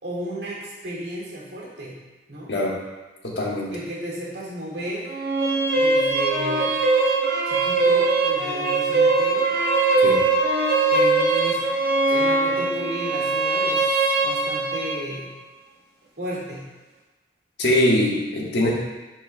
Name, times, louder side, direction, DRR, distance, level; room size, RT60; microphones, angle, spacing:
voice 1, 0.0-2.0 2.3-2.5 3.7-5.1 5.7-6.8 7.4-9.5 10.9-11.6 12.1-15.3 16.2-16.7, right 1 dB, 75° right, -5 dB, 1.9 m, -34 dB
voice 2, 3.2-3.7 10.0-10.2 17.6-18.7, left 1 dB, 85° left, -3 dB, 1.4 m, -22 dB
sound 1, 5.1-15.1, right 3 dB, 60° right, 1.0 m, -21 dB
10.5 x 4.4 x 2.2 m, 1.1 s
head